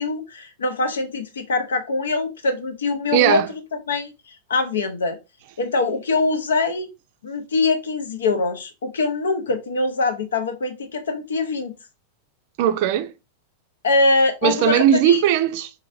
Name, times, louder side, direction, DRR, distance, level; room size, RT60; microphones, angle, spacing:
voice 1, 0.0-3.4 3.9-4.1 4.5-5.2 5.6-6.9 7.2-11.7 13.8-15.2, left 3 dB, 65° left, 0.7 m, -23 dB
voice 2, 3.1-3.5 12.6-13.1 14.4-15.7, right 10 dB, 50° right, 0.4 m, -18 dB
3.9 x 2.7 x 2.5 m
figure-of-eight pair, 90°, 0 cm